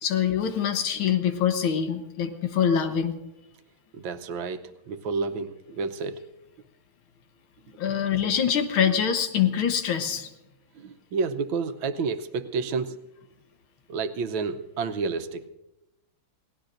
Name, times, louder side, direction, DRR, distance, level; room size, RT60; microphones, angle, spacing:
voice 1, 0.0-3.2 7.8-10.3, left 8 dB, 80° left, 7 dB, 1.9 m, -24 dB
voice 2, 3.9-6.3 10.8-13.0 13.9-15.4, right 4 dB, 75° right, 10 dB, 1.5 m, -30 dB
28.5 x 17.5 x 2.6 m, 0.94 s
omnidirectional pair, 2.3 m